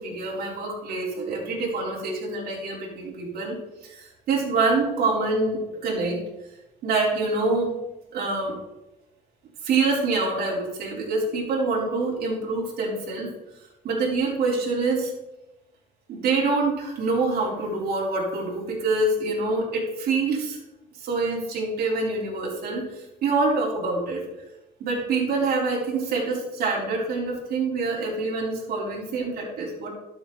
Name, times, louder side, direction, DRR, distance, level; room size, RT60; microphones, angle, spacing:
voice 1, 0.0-3.6 3.8-6.2 6.8-7.7 8.1-8.6 9.6-13.3 13.8-15.1 16.1-20.6 21.0-24.2 24.8-29.9, right 3 dB, 65° right, -4 dB, 3.8 m, -26 dB
12.0 x 6.8 x 4.0 m, 0.96 s
cardioid pair, 110°, 17 cm